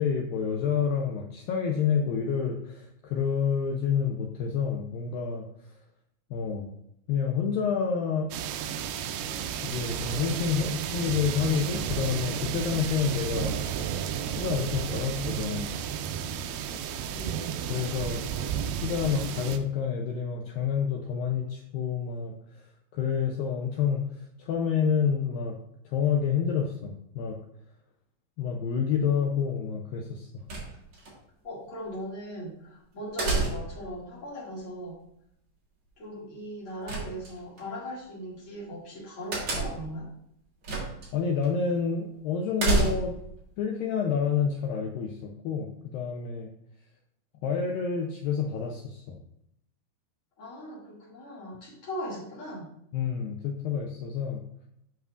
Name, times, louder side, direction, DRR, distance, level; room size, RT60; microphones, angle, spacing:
voice 1, 0.0-5.4 6.3-6.7 7.1-8.3 9.6-13.5 14.3-15.7 17.7-18.2 18.7-22.6 22.9-25.6 25.9-27.4 28.4-30.3 41.1-43.2 43.6-46.5 47.4-49.2 52.9-54.4, left 6 dB, 85° left, 1 dB, 2.0 m, -28 dB
sound 1, 8.3-19.6, right 8 dB, 85° right, 2.1 m, -32 dB
voice 2, 16.9-17.4 31.4-35.0 36.0-40.1 50.4-52.7, equal, 40° left, -7 dB, 2.4 m, -39 dB
sound 2, 30.5-31.1 33.2-33.9 36.9-37.6 39.3-39.9 40.6-41.1 41.4-41.5 42.6-43.3, right 3 dB, 50° right, 1.7 m, -28 dB
9.1 x 5.6 x 2.4 m, 0.77 s
omnidirectional pair, 4.8 m